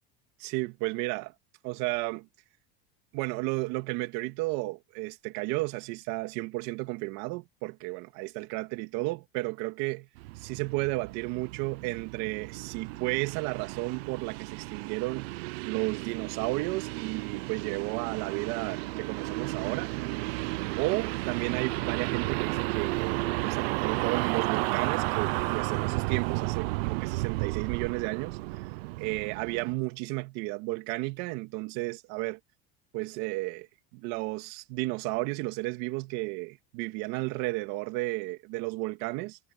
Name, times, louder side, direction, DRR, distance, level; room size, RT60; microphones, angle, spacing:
voice 1, 0.4-1.3 1.6-2.3 3.1-10.1 10.4-15.4 15.6-19.9 20.8-32.4 32.9-33.7 33.9-39.4, right 23 dB, 65° right, 2.8 m, -33 dB
sound 1, 10.2-29.7, right 22 dB, 80° right, 0.7 m, -33 dB
supercardioid pair, 125°, 30 cm